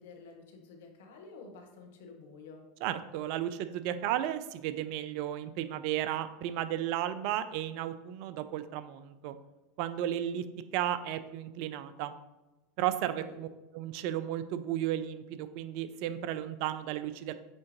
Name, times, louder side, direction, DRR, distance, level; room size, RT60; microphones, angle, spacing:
voice 1, 0.0-2.6 13.0-13.4, left 4 dB, 70° left, 3 dB, 1.1 m, -50 dB
voice 2, 2.8-9.4 9.8-10.4 10.7-12.1 12.8-13.5 13.7-17.3, right 11 dB, 55° right, 12 dB, 0.4 m, -34 dB
8.5 x 3.7 x 3.0 m, 1.0 s
hypercardioid pair, 85°, 0 cm